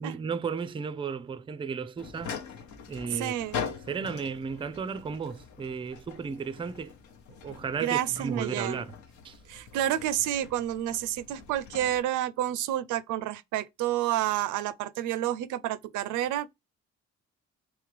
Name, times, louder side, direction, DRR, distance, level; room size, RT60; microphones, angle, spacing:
voice 1, 0.0-2.3 2.9-3.3 3.9-6.9 7.3-8.9 9.2-9.4, right 5 dB, 20° right, 0.4 m, -34 dB
sound 1, 2.0-12.0, left 6 dB, 70° left, 0.9 m, -42 dB
voice 2, 3.1-3.6 7.8-8.8 9.5-16.5, right 12 dB, 85° right, 0.5 m, -29 dB
3.6 x 3.2 x 3.2 m
cardioid pair, 90°, 30 cm